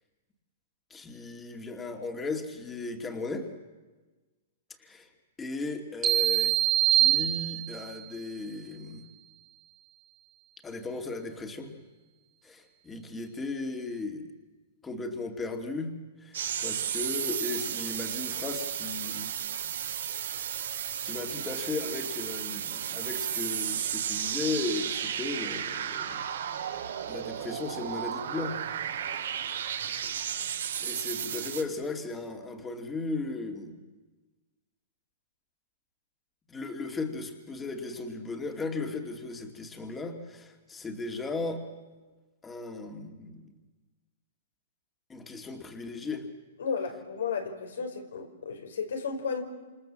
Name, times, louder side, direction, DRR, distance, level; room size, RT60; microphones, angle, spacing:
voice 1, 0.9-3.5 4.8-5.1 5.4-6.6 6.9-9.0 10.6-11.7 12.4-14.3 14.8-15.9 16.2-19.3 20.4-20.7 21.0-26.2 27.1-28.6 29.6-29.7 30.8-33.8 36.5-41.6 42.4-43.5 45.1-46.3, left 3 dB, 10° left, 4 dB, 2.5 m, -36 dB
sound 1, 6.0-8.0, right 13 dB, 25° right, 2.0 m, -24 dB
sound 2, 16.3-31.6, right 9 dB, 80° right, 4.1 m, -33 dB
voice 2, 46.6-49.4, left 5 dB, 85° left, 4 dB, 5.3 m, -33 dB
28.0 x 27.5 x 7.6 m, 1.3 s
hypercardioid pair, 150°, 0 cm